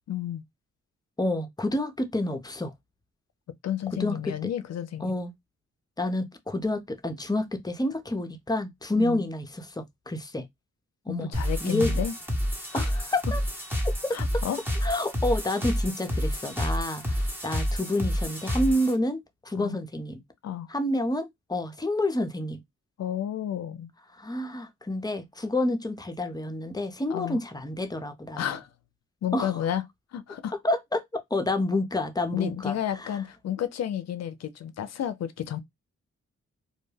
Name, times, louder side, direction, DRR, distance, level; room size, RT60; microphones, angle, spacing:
voice 1, 0.1-0.4 3.6-5.1 9.0-9.2 11.1-12.1 12.7-12.9 14.1-14.6 19.5-19.8 20.4-20.7 23.0-23.9 27.1-27.4 28.4-28.7 29.2-29.8 30.1-30.5 32.3-35.6, left 10 dB, 60° left, 0.5 m, -31 dB
voice 2, 1.2-2.7 4.0-4.3 5.0-5.3 6.0-10.4 11.1-11.3 11.6-11.9 12.7-13.4 13.8-14.2 14.8-20.2 20.7-22.6 24.1-28.6 29.3-29.6 30.6-33.2, left 1 dB, 15° left, 0.6 m, -29 dB
sound 1, 11.3-18.9, equal, 5° right, 0.9 m, -29 dB
2.2 x 2.1 x 3.2 m
cardioid pair, 55°, 29 cm